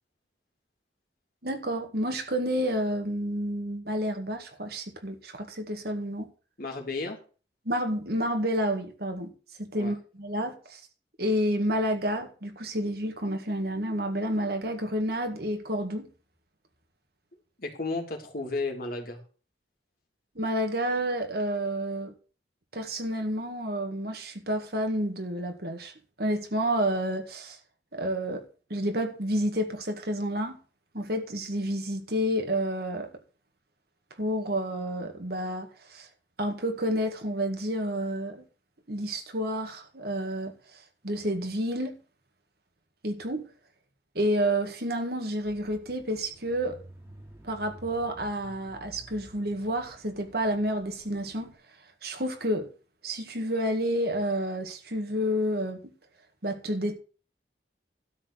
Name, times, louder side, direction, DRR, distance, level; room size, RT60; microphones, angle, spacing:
voice 1, 1.4-6.3 7.7-9.3 9.6-10.8 11.2-16.1 20.4-22.1 22.7-25.9 26.2-27.6 27.9-28.5 28.7-30.6 30.9-33.1 34.2-36.1 36.4-38.5 38.9-42.0 43.0-43.5 44.2-46.8 47.4-51.5 52.0-52.7 53.0-55.9 56.4-57.0, equal, 55° right, 2.0 m, -30 dB
voice 2, 6.6-7.2 9.8-9.9 17.6-19.2, left 3 dB, 50° left, 2.6 m, -33 dB
Bicycle / Mechanisms, 45.4-51.5, right 1 dB, 15° right, 2.5 m, -52 dB
12.5 x 4.4 x 8.4 m
head